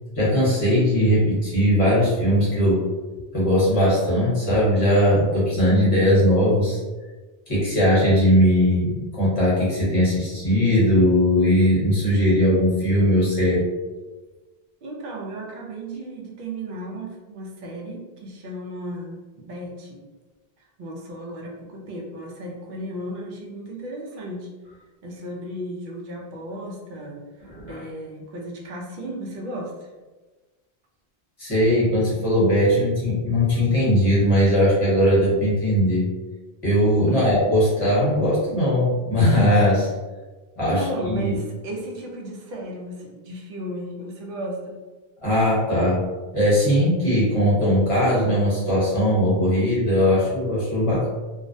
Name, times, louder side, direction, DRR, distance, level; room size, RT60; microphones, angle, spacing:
voice 1, 0.1-2.8 3.3-6.8 7.5-13.7 27.5-27.8 31.4-36.0 36.6-39.9 40.6-40.8 41.1-41.3 45.2-46.0 46.3-51.1, equal, 35° left, -7 dB, 1.0 m, -19 dB
voice 2, 14.8-20.0 20.6-24.5 25.0-29.9 37.1-37.5 40.7-44.8, right 1 dB, 60° right, -1 dB, 0.6 m, -34 dB
2.4 x 2.0 x 2.6 m, 1.2 s
omnidirectional pair, 1.0 m